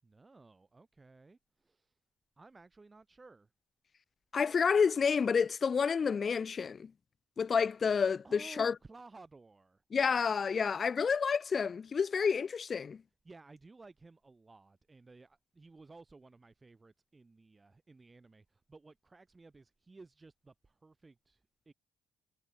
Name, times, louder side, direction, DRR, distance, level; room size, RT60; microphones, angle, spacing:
voice 1, 0.0-1.9 2.4-3.5 8.2-9.8 13.2-21.7, right 3 dB, 25° right, 7.9 m, -56 dB
voice 2, 4.3-6.9 7.4-8.7 9.9-13.0, left 6 dB, 45° left, 0.3 m, -29 dB
cardioid pair, 90°, 0 cm